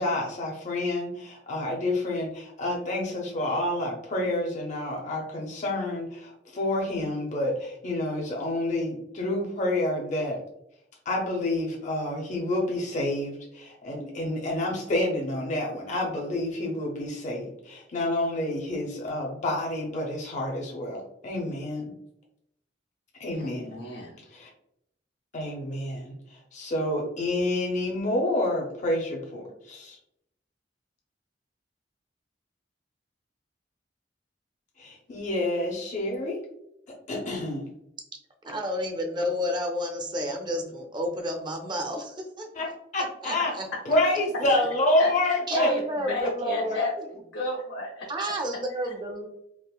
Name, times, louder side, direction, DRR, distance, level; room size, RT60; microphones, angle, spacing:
voice 1, 0.0-10.4 11.1-21.9 23.2-23.8 24.3-24.5 25.3-30.0 34.8-36.4 37.1-37.7 42.6-42.7 42.9-43.5 43.9-45.7, left 1 dB, 40° left, -1 dB, 0.5 m, -28 dB
voice 2, 23.4-24.2 45.0-45.1 45.5-46.9 47.3-48.1, left 1 dB, 80° left, -4 dB, 0.7 m, -32 dB
voice 3, 38.4-42.5 43.2-43.7 45.5-47.1 48.1-49.3, left 1 dB, 25° right, 3 dB, 0.5 m, -30 dB
3.6 x 2.4 x 2.2 m, 0.78 s
head